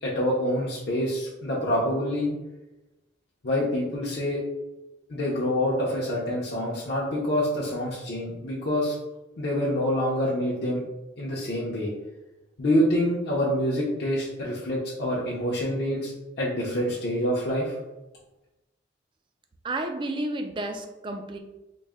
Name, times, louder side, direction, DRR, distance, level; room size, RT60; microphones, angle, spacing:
voice 1, 0.0-2.3 3.4-4.4 5.1-8.9 9.4-10.8 11.2-11.9 12.6-16.1 16.4-17.7, left 1 dB, 55° left, -6 dB, 0.7 m, -26 dB
voice 2, 19.6-21.4, right 1 dB, 25° right, 5 dB, 0.3 m, -31 dB
4.0 x 2.1 x 3.5 m, 1.0 s
head